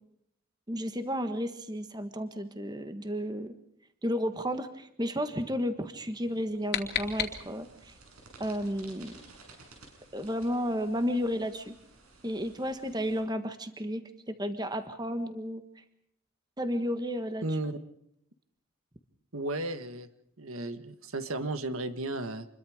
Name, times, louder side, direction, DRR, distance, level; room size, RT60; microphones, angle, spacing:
voice 1, 0.7-3.5 4.0-7.9 8.4-9.2 10.1-11.7 12.2-15.6 16.6-17.4, equal, 20° right, 9 dB, 1.5 m, -32 dB
sound 1, 6.2-7.9, left 8 dB, 45° left, 2.6 m, -35 dB
sound 2, 6.9-13.2, right 3 dB, 90° right, 7.6 m, -55 dB
voice 2, 17.4-17.8 19.3-20.1 20.4-22.5, right 2 dB, 70° right, 10 dB, 1.6 m, -34 dB
28.0 x 22.5 x 5.0 m, 0.74 s
head